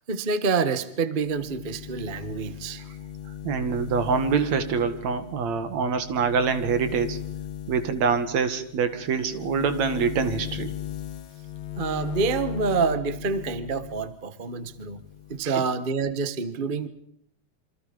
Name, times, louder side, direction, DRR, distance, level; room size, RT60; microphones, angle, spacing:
voice 1, 0.1-2.8 11.8-15.0 15.3-16.9, right 5 dB, 40° right, 13 dB, 0.7 m, -27 dB
sound 1, 1.2-14.1 14.5-15.5, left 11 dB, 60° left, 1.4 m, -38 dB
voice 2, 3.4-7.2 7.7-10.7 15.4-15.5, right 6 dB, 70° right, 10 dB, 3.2 m, -25 dB
28.5 x 25.0 x 5.3 m, 0.69 s
omnidirectional pair, 3.3 m